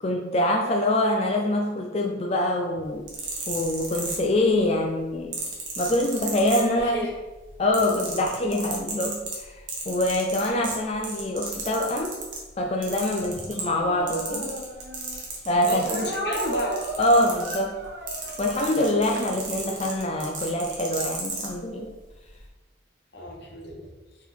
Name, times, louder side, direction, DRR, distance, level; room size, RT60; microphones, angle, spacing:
voice 1, 0.0-3.1 3.5-5.3 5.8-7.0 7.6-12.2 12.6-14.5 15.5-15.8 17.0-17.8 18.4-21.9, left 1 dB, 30° left, 1 dB, 0.4 m, -25 dB
sound 1, 2.9-4.6 5.3-7.1 7.4-12.4 12.8-13.8 14.1-21.5 22.2-22.4, right 4 dB, 75° right, 1.6 m, -34 dB
voice 2, 6.7-7.1 13.2-13.5 15.6-16.8 23.1-23.8, left 1 dB, 55° left, 0 dB, 1.2 m, -31 dB
Speech, 13.7-15.2 15.9-19.9, right 1 dB, 55° right, 1.3 m, -34 dB
5.4 x 4.5 x 4.3 m, 1.2 s
head